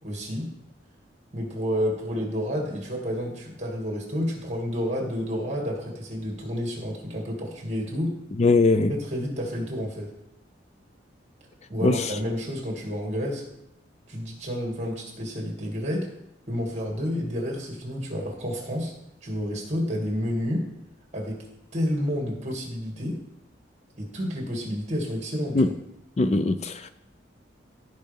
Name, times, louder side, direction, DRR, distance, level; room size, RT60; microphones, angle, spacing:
voice 1, 0.0-0.5 1.3-8.2 8.9-10.1 11.7-13.4 14.1-16.1 16.5-18.9 19.2-20.7 21.1-21.4 21.7-23.2 24.0-25.7, equal, 35° right, -1 dB, 2.5 m, -30 dB
voice 2, 8.4-8.9 11.8-12.0 25.5-25.7 26.2-26.9, left 3 dB, 35° left, 11 dB, 0.4 m, -20 dB
16.0 x 5.4 x 3.6 m, 0.84 s
head